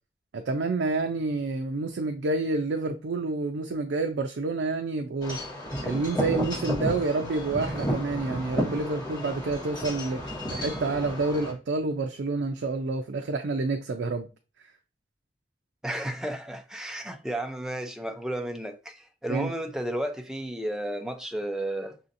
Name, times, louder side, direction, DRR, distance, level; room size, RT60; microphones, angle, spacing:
voice 1, 0.3-5.4 5.8-10.2 10.5-14.3 14.6-14.7 19.3-19.5, right 3 dB, 85° right, 0.4 m, -28 dB
Wind chime / Wind, 5.2-11.5, equal, 25° left, 1.6 m, -32 dB
voice 2, 15.8-22.0, right 1 dB, 5° right, 0.4 m, -33 dB
6.1 x 2.7 x 2.5 m
head